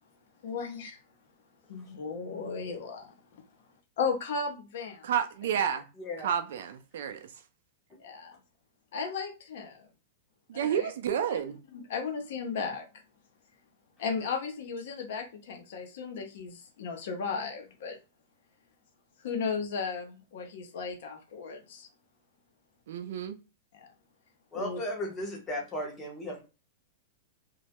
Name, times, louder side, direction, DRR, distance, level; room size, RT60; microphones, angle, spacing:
voice 1, 0.4-1.0 1.7-3.1 4.0-5.0 8.0-8.3 8.9-9.8 10.5-10.9 11.3-11.4 11.7-12.8 14.0-18.0 19.2-21.9 23.8-23.9 24.5-24.8 25.1-25.2, left 5 dB, 60° left, 0.6 m, -35 dB
voice 2, 5.0-5.9 6.2-7.3 10.5-11.6 22.9-23.4, right 8 dB, 65° right, 0.4 m, -30 dB
voice 3, 24.5-26.4, left 1 dB, 15° left, 0.7 m, -35 dB
2.2 x 2.0 x 2.8 m
supercardioid pair, 170°, 0 cm